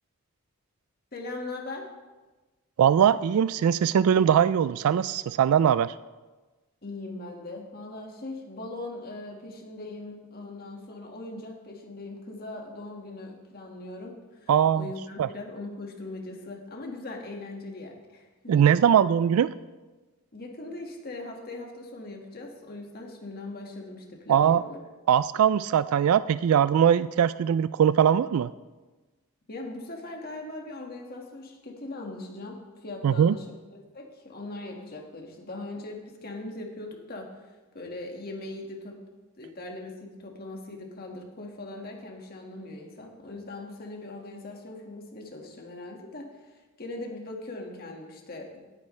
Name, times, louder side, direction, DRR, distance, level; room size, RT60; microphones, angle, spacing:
voice 1, 1.1-1.9 6.8-18.5 20.3-24.8 29.5-33.4 33.9-37.3 37.7-39.0 39.4-46.3 46.8-48.5, left 2 dB, 45° left, 1 dB, 1.8 m, -40 dB
voice 2, 2.8-5.9 14.5-14.9 15.2-15.3 18.5-19.5 24.3-24.6 25.1-28.5 33.0-33.3, right 8 dB, 75° right, 16 dB, 0.3 m, -21 dB
17.5 x 9.5 x 3.3 m, 1.2 s
head